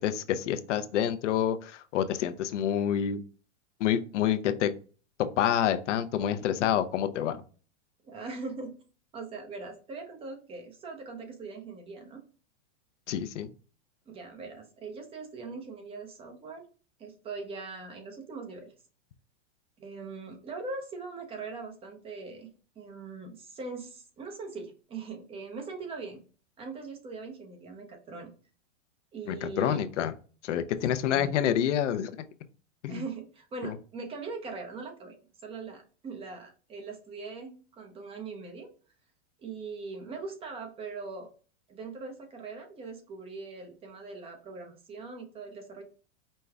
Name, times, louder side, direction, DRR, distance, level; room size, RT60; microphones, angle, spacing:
voice 1, 0.0-3.2 3.8-4.7 5.2-7.4 13.1-13.5 29.3-30.1 30.4-32.2 32.8-33.0 33.6-33.7, left 10 dB, 85° left, 10 dB, 0.7 m, -28 dB
voice 2, 8.0-8.8 9.1-12.2 14.1-16.7 17.0-18.7 19.8-22.5 22.8-26.2 26.6-28.3 29.1-29.8 31.0-31.3 32.9-35.2 35.4-38.7 39.4-41.3 41.7-45.8, right 4 dB, 15° right, 3 dB, 0.7 m, -41 dB
5.3 x 2.2 x 3.4 m, 0.38 s
supercardioid pair, 155°, 35 cm